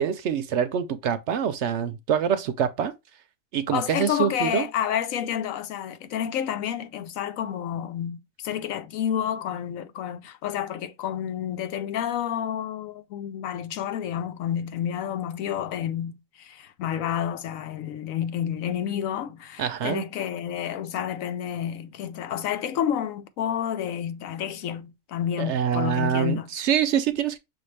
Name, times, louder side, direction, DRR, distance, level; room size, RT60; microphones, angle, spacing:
voice 1, 0.0-2.9 3.5-4.7 19.6-20.0 25.4-27.4, right 8 dB, 65° right, 0.8 m, -25 dB
voice 2, 3.7-26.5, left 9 dB, 80° left, 1.1 m, -30 dB
6.3 x 2.6 x 3.2 m
omnidirectional pair, 1.4 m